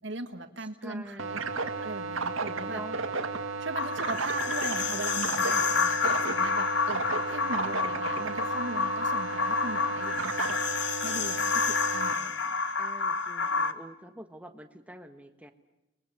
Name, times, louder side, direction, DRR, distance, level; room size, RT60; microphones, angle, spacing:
voice 1, 0.0-1.4 1.8-2.8 3.6-12.8, right 2 dB, 60° right, 7 dB, 1.7 m, -39 dB
voice 2, 0.6-1.6 2.7-3.0 12.8-15.5, right 1 dB, 5° right, 6 dB, 1.4 m, -46 dB
sound 1, 1.2-12.1, right 4 dB, 80° right, 1.9 m, -34 dB
sound 2, 3.7-13.7, left 5 dB, 55° left, 1.3 m, -29 dB
29.5 x 21.5 x 7.3 m, 0.97 s
head